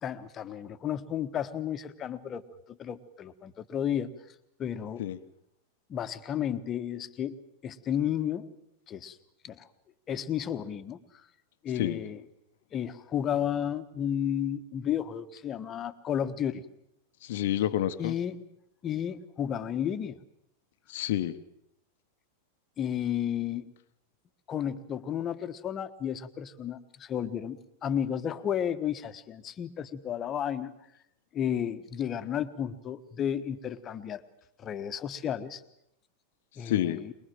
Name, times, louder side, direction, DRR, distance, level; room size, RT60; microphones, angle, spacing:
voice 1, 0.0-2.4 2.7-4.1 4.6-5.0 5.9-7.4 7.6-8.5 8.9-9.2 9.4-9.7 10.1-11.0 11.6-12.2 12.7-16.6 18.0-18.4 18.8-20.2 22.8-23.7 24.5-30.7 31.3-34.2 34.6-35.6 36.6-37.1, left 9 dB, 30° left, 11 dB, 1.3 m, -32 dB
voice 2, 17.2-18.1 20.9-21.4 36.6-37.0, left 12 dB, 55° left, 11 dB, 1.0 m, -29 dB
23.0 x 22.0 x 7.6 m, 0.78 s
figure-of-eight pair, 90°, 0 cm